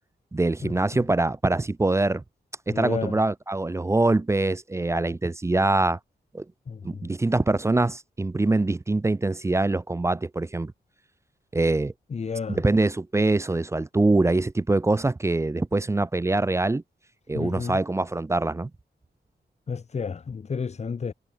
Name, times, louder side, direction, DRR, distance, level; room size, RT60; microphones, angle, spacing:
voice 1, 0.3-2.2 2.7-6.0 6.3-6.4 6.8-10.7 11.5-11.9 12.5-16.8 17.3-18.7, right 2 dB, 15° right, 0.4 m, -24 dB
voice 2, 2.7-3.1 6.7-6.8 12.1-12.6 17.3-17.8 19.7-21.1, left 5 dB, 40° left, 0.7 m, -31 dB
wide cardioid pair, 140°, 18 cm